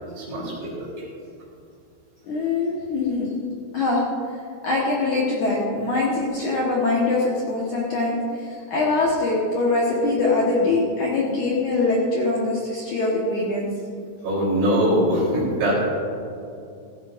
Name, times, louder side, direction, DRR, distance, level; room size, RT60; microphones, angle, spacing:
voice 1, 0.2-0.9 14.2-15.7, equal, 55° right, -5 dB, 5.5 m, -22 dB
voice 2, 2.3-3.3 3.7-4.0 4.6-13.6, left 3 dB, 75° left, -5 dB, 1.7 m, -23 dB
17.0 x 14.5 x 2.6 m, 2.5 s
omnidirectional pair, 6.0 m